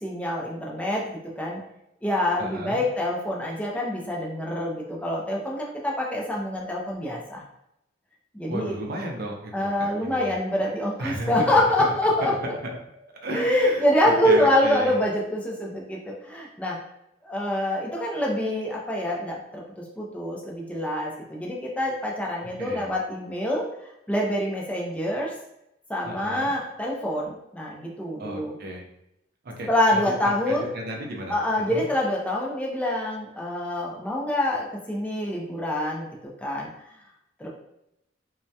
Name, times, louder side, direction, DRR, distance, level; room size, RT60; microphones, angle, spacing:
voice 1, 0.0-1.6 2.0-7.4 8.3-8.8 9.5-12.3 13.3-16.8 17.2-23.6 24.1-25.3 25.9-28.5 29.7-30.7 31.3-36.1 36.4-36.7 37.4-37.5, left 1 dB, 5° left, -3 dB, 0.4 m, -26 dB
voice 2, 2.4-2.8 8.5-10.3 11.0-11.6 12.2-12.3 12.6-12.8 13.2-14.9 22.6-22.9 26.0-26.5 28.2-28.8 29.6-31.8, right 1 dB, 55° right, 1 dB, 0.5 m, -34 dB
2.2 x 2.1 x 2.7 m, 0.81 s
head